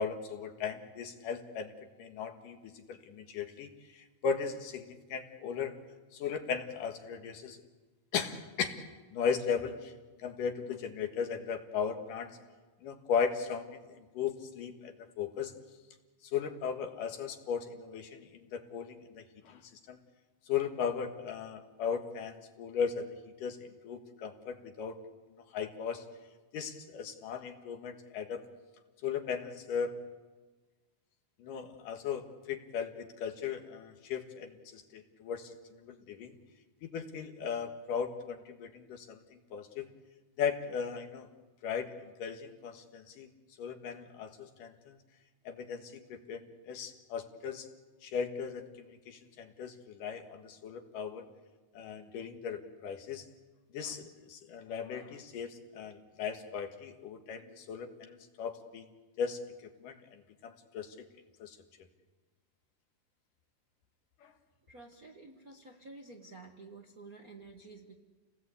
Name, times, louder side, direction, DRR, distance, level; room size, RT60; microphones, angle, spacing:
voice 1, 0.0-1.7 2.0-5.8 6.1-7.6 8.1-8.8 9.1-9.9 10.2-12.4 12.8-15.5 16.2-20.0 20.5-25.0 25.5-26.1 26.5-28.4 29.0-30.0 31.4-36.3 36.8-39.9 40.4-41.3 41.6-43.3 43.6-45.0 45.4-47.7 48.0-51.2 51.7-53.2 53.7-58.9 59.2-61.1 61.4-61.6 64.2-64.3, left 6 dB, 85° left, 6 dB, 3.2 m, -37 dB
voice 2, 64.7-68.0, right 3 dB, 45° right, 1 dB, 1.1 m, -51 dB
29.0 x 18.5 x 8.4 m, 1.3 s
omnidirectional pair, 3.7 m